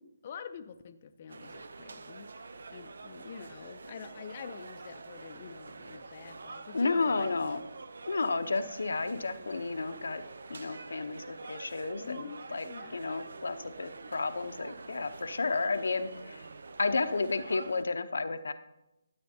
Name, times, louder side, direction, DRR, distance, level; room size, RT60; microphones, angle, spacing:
voice 1, 0.2-7.6 12.0-13.1, left 7 dB, 40° left, 7 dB, 0.5 m, -46 dB
sound 1, 1.3-17.8, right 3 dB, 70° right, 0.6 m, -47 dB
voice 2, 6.7-7.6 8.1-10.2 10.5-12.6 12.9-16.5 16.8-18.5, left 3 dB, 75° left, 9 dB, 0.8 m, -32 dB
13.0 x 8.6 x 2.8 m, 0.92 s
figure-of-eight pair, 150°, 0 cm